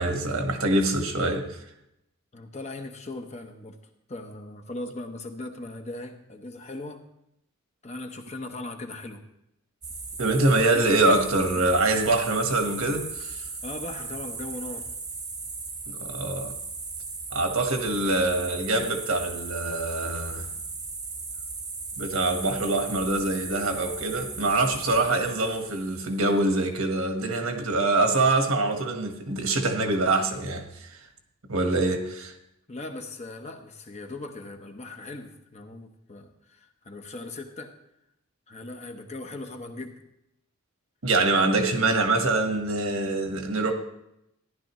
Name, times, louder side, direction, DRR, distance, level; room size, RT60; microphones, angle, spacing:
voice 1, 0.0-1.6 10.2-13.4 15.9-16.5 17.3-20.5 22.0-31.1 31.5-32.3 41.0-43.7, right 2 dB, 70° right, 1.4 m, -24 dB
voice 2, 2.3-3.8 4.1-7.0 7.8-9.2 13.6-14.9 32.7-37.7 38.5-40.0, left 2 dB, 30° left, 0.9 m, -39 dB
sound 1, 9.8-26.5, right 4 dB, 20° right, 0.9 m, -37 dB
14.5 x 11.0 x 3.1 m
head